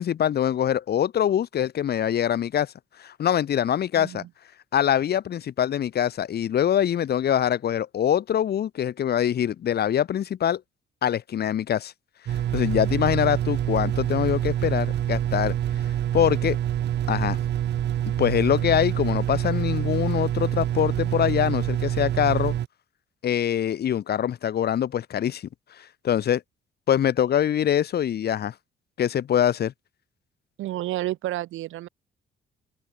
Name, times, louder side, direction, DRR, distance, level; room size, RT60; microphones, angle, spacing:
voice 1, 0.0-2.7 3.0-4.2 4.7-10.6 11.0-11.9 12.3-15.5 16.1-16.6 17.1-17.4 18.2-22.5 23.2-25.5 25.8-26.4 26.9-28.5 29.0-29.7, left 10 dB, 55° left, 0.9 m, -24 dB
voice 2, 4.0-4.3 30.6-31.9, right 15 dB, 90° right, 2.6 m, -30 dB
sound 1, 12.3-22.7, right 11 dB, 60° right, 0.8 m, -26 dB
cardioid pair, 90°, 20 cm